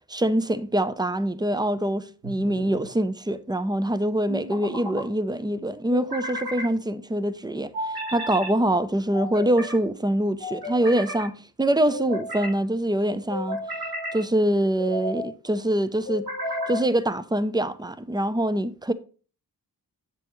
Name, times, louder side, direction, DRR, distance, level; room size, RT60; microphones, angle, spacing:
voice 1, 0.1-13.6 14.1-16.3 16.7-18.9, right 1 dB, 10° right, 0.5 m, -24 dB
sound 1, 2.2-2.9 4.3-5.0 5.9-6.7 7.7-8.5 9.1-9.8 10.4-11.2 11.9-12.6 13.3-14.2 14.8-15.3 16.0-16.9, equal, 80° right, 3.9 m, -33 dB
7.7 x 6.9 x 3.0 m
wide cardioid pair, 95°, 38 cm